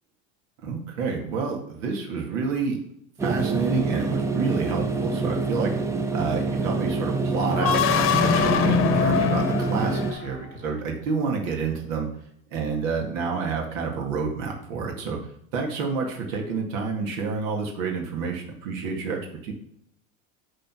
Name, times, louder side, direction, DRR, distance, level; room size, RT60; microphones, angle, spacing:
voice 1, 0.6-2.8 3.2-5.7 6.1-12.1 12.5-15.2 15.5-19.5, right 5 dB, 80° right, 1 dB, 2.2 m, -29 dB
sound 1, 3.2-10.1, right 3 dB, 10° right, 0.5 m, -26 dB
sound 2, 7.5-10.5, left 7 dB, 35° left, 0.9 m, -23 dB
10.0 x 3.9 x 6.2 m, 0.72 s
supercardioid pair, 140°, 38 cm